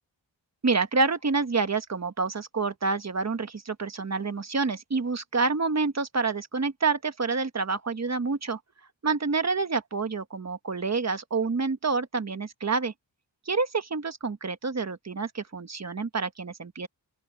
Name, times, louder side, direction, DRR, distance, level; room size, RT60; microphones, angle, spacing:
voice 1, 0.6-8.6 9.0-12.9 13.5-16.9, right 4 dB, 35° right, 1.3 m, -28 dB
open air
wide cardioid pair, 90°, 45 cm